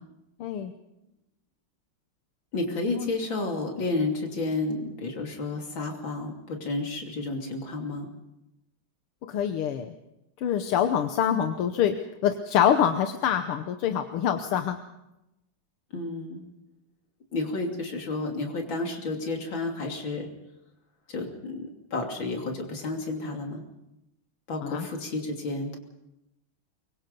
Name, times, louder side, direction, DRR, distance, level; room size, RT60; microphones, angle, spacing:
voice 1, 0.4-0.7 2.9-3.1 9.2-9.9 10.4-12.0 12.2-14.8 24.6-24.9, left 9 dB, 85° left, 7 dB, 1.9 m, -25 dB
voice 2, 2.5-8.1 15.9-16.4 17.3-20.3 21.1-23.6 24.5-25.8, left 2 dB, 60° left, 2 dB, 3.7 m, -31 dB
24.0 x 22.5 x 5.3 m, 0.91 s
omnidirectional pair, 2.4 m